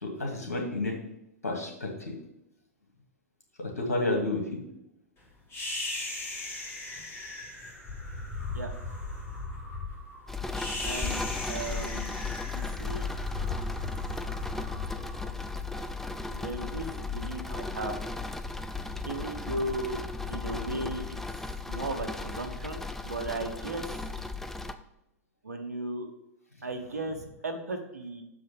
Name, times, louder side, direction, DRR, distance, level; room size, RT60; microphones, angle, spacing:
voice 1, 0.0-1.0 1.4-2.2 3.6-4.6 11.3-11.4, left 2 dB, 85° left, 0 dB, 2.1 m, -31 dB
sound 1, 5.5-15.9, left 2 dB, 30° left, 2.5 m, -38 dB
sound 2, 10.3-24.7, left 3 dB, 5° left, 0.4 m, -35 dB
voice 2, 10.8-13.1 16.3-18.0 19.0-20.0 20.3-21.0 21.7-23.9 25.4-26.1 26.6-27.2 27.4-28.2, right 2 dB, 90° right, 5 dB, 1.2 m, -36 dB
6.7 x 4.9 x 5.1 m, 0.85 s
hypercardioid pair, 110°, 8 cm